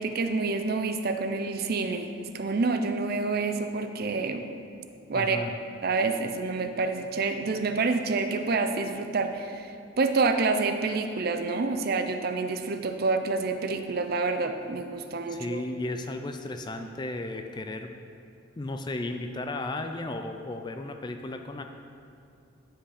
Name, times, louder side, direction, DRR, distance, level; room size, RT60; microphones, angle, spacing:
voice 1, 0.0-4.4 5.1-5.4 5.8-15.6, right 3 dB, 50° right, 7 dB, 0.5 m, -28 dB
voice 2, 5.1-5.5 15.3-18.0 18.6-21.6, left 2 dB, 20° left, 6 dB, 0.4 m, -34 dB
10.0 x 5.6 x 4.9 m, 2.6 s
head